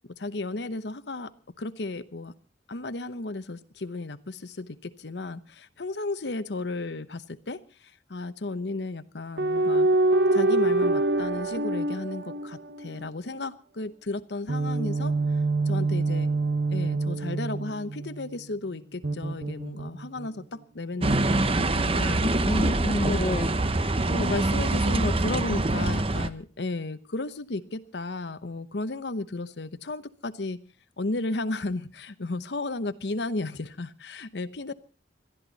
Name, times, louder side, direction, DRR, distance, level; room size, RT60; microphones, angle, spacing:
voice 1, 0.2-1.3 1.6-2.3 2.7-9.9 10.3-15.1 15.7-16.3 16.7-22.3 23.0-23.5 23.8-30.6 31.0-34.7, left 2 dB, 70° left, 12 dB, 0.9 m, -34 dB
sound 1, 9.4-13.1 14.5-18.2 19.0-20.3, right 2 dB, 70° right, 1.2 m, -25 dB
sound 2, 21.0-26.3, right 2 dB, 35° right, 0.9 m, -25 dB
voice 2, 22.2-23.6, left 1 dB, 35° left, 10 dB, 0.8 m, -29 dB
22.0 x 13.5 x 4.1 m, 0.35 s
head